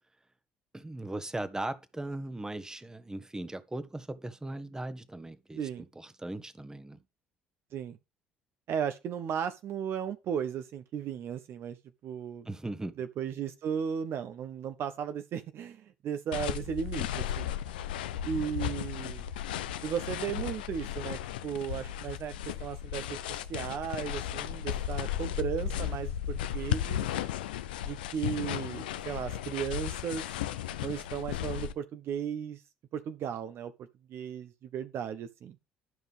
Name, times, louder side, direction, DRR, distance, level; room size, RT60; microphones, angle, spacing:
voice 1, 0.7-5.6 6.0-7.0 12.5-12.9, right 2 dB, 10° right, 1.1 m, -38 dB
voice 2, 8.7-11.8 12.0-12.5 13.0-17.5 18.2-19.2 19.8-23.2 23.5-27.0 27.8-30.3 30.8-32.6 32.9-33.7 34.1-35.6, right 8 dB, 55° right, 0.7 m, -35 dB
sound 1, 16.3-31.7, left 10 dB, 80° left, 0.5 m, -35 dB
12.0 x 5.3 x 3.5 m
hypercardioid pair, 55°, 5 cm